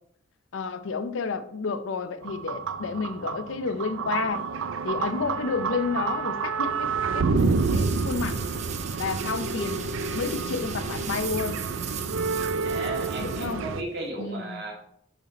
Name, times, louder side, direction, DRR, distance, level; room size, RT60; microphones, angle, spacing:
voice 1, 0.5-4.5 4.8-8.4 9.0-11.6 13.2-13.6 14.2-14.6, left 4 dB, 85° left, 0.5 m, -31 dB
sound 1, 2.2-13.8, right 4 dB, 85° right, 0.4 m, -29 dB
sound 2, 7.4-14.1, right 9 dB, 35° right, 0.5 m, -39 dB
voice 2, 12.6-14.7, right 2 dB, 60° right, 2.1 m, -35 dB
7.0 x 4.1 x 4.1 m
head